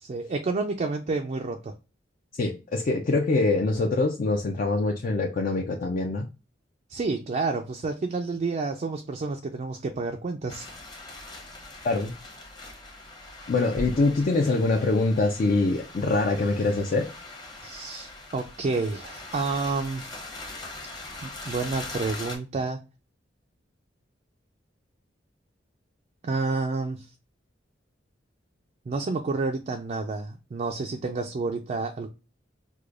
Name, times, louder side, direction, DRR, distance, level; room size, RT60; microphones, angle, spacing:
voice 1, 0.0-1.7 6.9-10.7 17.6-20.1 21.2-22.8 26.2-27.1 28.9-32.1, right 3 dB, 40° right, 3 dB, 0.3 m, -29 dB
voice 2, 2.4-6.3 11.8-12.1 13.5-17.1, left 3 dB, 50° left, 1 dB, 0.4 m, -24 dB
sound 1, 10.5-22.4, left 2 dB, 25° left, 0.8 m, -41 dB
4.8 x 2.2 x 2.3 m, 0.30 s
head